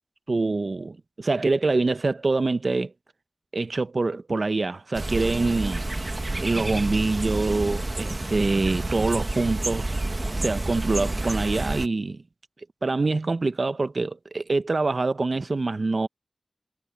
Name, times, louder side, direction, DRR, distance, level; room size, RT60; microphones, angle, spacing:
voice 1, 0.3-2.9 3.5-5.8 6.4-9.9 10.4-12.2 12.8-16.1, right 3 dB, 70° right, 0.8 m, -25 dB
sound 1, 4.9-11.9, right 2 dB, 45° right, 1.5 m, -29 dB
sound 2, 6.3-6.8 7.3-7.4 8.2-9.2 9.5-9.8, right 4 dB, 85° right, 6.5 m, -41 dB
cardioid pair, 40°, 0 cm